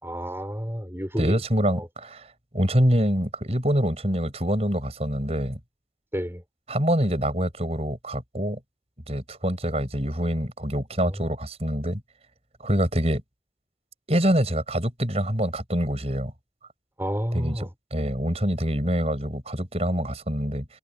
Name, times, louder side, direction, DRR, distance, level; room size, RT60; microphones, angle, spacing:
voice 1, 0.0-1.9 6.1-6.4 11.0-11.2 17.0-17.7, equal, 15° right, 7.2 m, -31 dB
voice 2, 1.2-5.6 6.7-8.6 9.1-12.0 12.6-13.2 14.1-16.3 17.3-17.6 17.9-20.7, equal, 35° right, 6.6 m, -25 dB
head